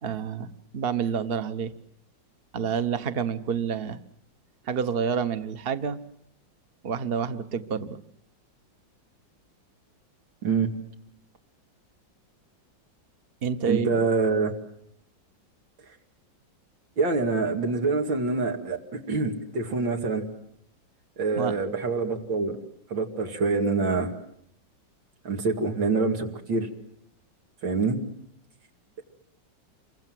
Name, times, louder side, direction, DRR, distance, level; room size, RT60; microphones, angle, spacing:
voice 1, 0.0-1.7 2.5-4.0 4.7-6.0 6.8-8.0 13.4-14.0 21.3-21.6, right 6 dB, 35° right, 11 dB, 1.1 m, -28 dB
voice 2, 13.6-14.5 17.0-20.3 21.2-22.6 22.9-24.1 25.2-26.7 27.6-28.0, right 4 dB, 85° right, 2 dB, 3.1 m, -26 dB
28.5 x 24.0 x 7.7 m, 0.69 s
omnidirectional pair, 2.0 m